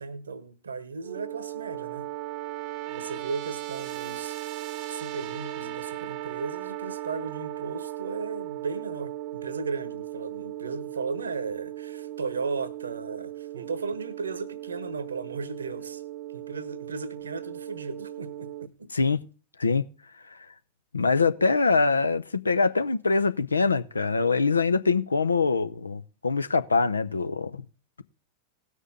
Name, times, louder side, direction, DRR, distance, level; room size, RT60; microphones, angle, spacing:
voice 1, 0.0-2.1 2.8-4.4 4.9-16.0 16.3-18.9, right 4 dB, 70° right, 1.1 m, -36 dB
sound 1, 1.0-18.7, right 15 dB, 45° right, 0.8 m, -37 dB
voice 2, 20.9-27.6, left 4 dB, 75° left, 0.6 m, -24 dB
18.0 x 6.5 x 3.6 m
figure-of-eight pair, 90°, 0 cm